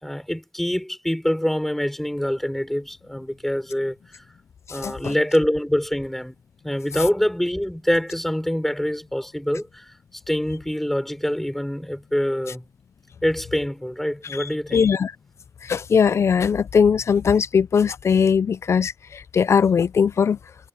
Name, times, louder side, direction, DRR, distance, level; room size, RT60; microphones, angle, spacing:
voice 1, 0.0-4.2 4.7-6.3 6.6-9.9 10.3-12.6 13.2-14.9, equal, 5° left, 5.5 m, -25 dB
voice 2, 4.8-5.1 14.4-14.5 14.7-15.1 15.6-20.4, left 6 dB, 55° left, 0.5 m, -20 dB
wide cardioid pair, 140°, 6 cm